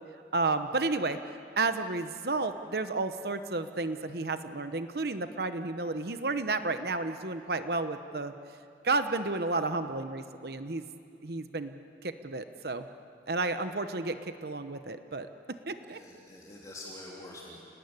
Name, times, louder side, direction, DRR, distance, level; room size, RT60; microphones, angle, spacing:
voice 1, 0.3-1.2 1.6-8.3 8.8-10.8 11.2-12.8 13.3-15.3 15.7-16.0, right 3 dB, 60° right, 9 dB, 1.0 m, -32 dB
voice 2, 15.8-17.6, left 1 dB, 20° left, -4 dB, 3.3 m, -46 dB
30.0 x 19.0 x 9.8 m, 2.4 s
head